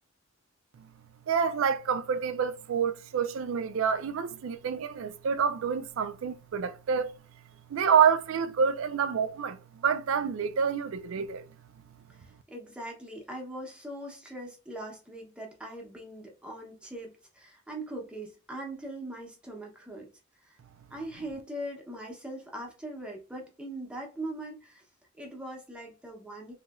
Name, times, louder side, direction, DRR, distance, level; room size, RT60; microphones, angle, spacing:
voice 1, 1.3-7.1 7.7-11.5, right 7 dB, 65° right, 0.3 m, -28 dB
voice 2, 12.1-20.1 20.4-20.6 20.9-24.8 25.2-26.5, right 1 dB, 5° right, 0.7 m, -41 dB
3.0 x 2.7 x 2.3 m
head